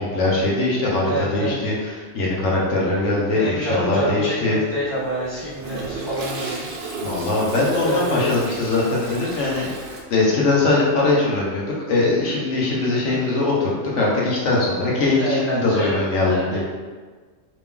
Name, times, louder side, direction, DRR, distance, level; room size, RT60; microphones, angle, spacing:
voice 1, 0.0-4.6 7.0-9.7 10.1-16.6, left 2 dB, 60° left, -4 dB, 1.2 m, -21 dB
voice 2, 1.0-1.5 3.3-6.7 7.8-8.3 12.9-13.2 15.2-16.6, right 1 dB, 20° right, -14 dB, 1.2 m, -27 dB
Toilet flush, 4.7-10.0, right 2 dB, 60° right, 0.6 m, -33 dB
3.1 x 3.0 x 3.6 m, 1.5 s
omnidirectional pair, 1.4 m